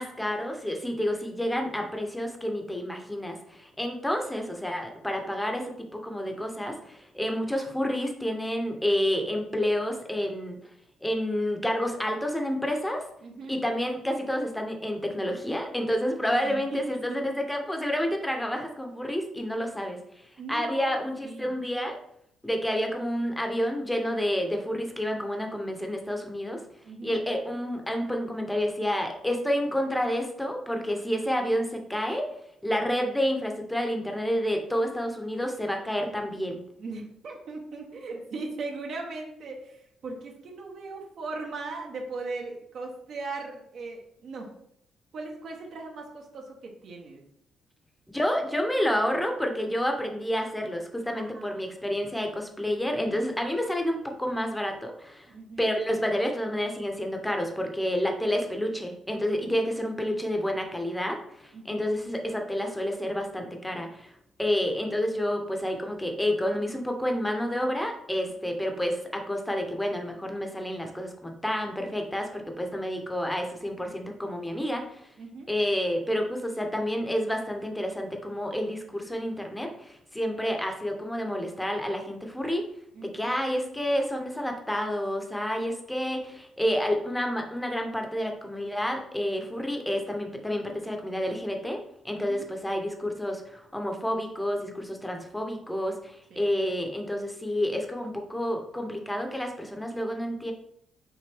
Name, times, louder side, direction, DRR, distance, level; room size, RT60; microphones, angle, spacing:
voice 1, 0.0-10.6 11.0-13.0 13.5-20.0 20.5-22.0 22.4-26.6 27.0-32.3 32.6-36.6 48.1-55.3 55.6-64.1 64.4-75.0 75.5-82.7 83.0-91.8 92.0-100.5, equal, 5° left, 3 dB, 0.8 m, -29 dB
voice 2, 13.2-13.6 16.4-16.8 17.1-17.2 20.4-21.5 26.8-27.2 36.8-44.5 45.1-47.2 51.1-51.6 55.3-55.7 59.5-59.8 61.5-61.9 68.5-68.6 75.2-75.5 82.9-83.3 92.1-92.5 96.3-96.5, right 3 dB, 65° right, 0 dB, 1.0 m, -39 dB
5.9 x 2.6 x 3.4 m, 0.73 s
cardioid pair, 90°, 0 cm